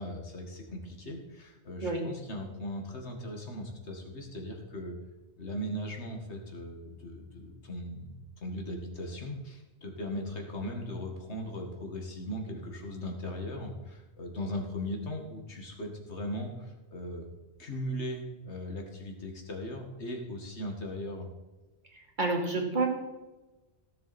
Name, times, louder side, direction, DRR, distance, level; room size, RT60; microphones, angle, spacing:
voice 1, 0.0-5.0 5.4-8.1 8.4-17.3 17.6-21.3, left 1 dB, 80° left, 2 dB, 2.2 m, -38 dB
voice 2, 22.2-22.9, right 3 dB, 45° right, 1 dB, 2.3 m, -28 dB
16.5 x 7.5 x 4.3 m, 1.1 s
omnidirectional pair, 1.1 m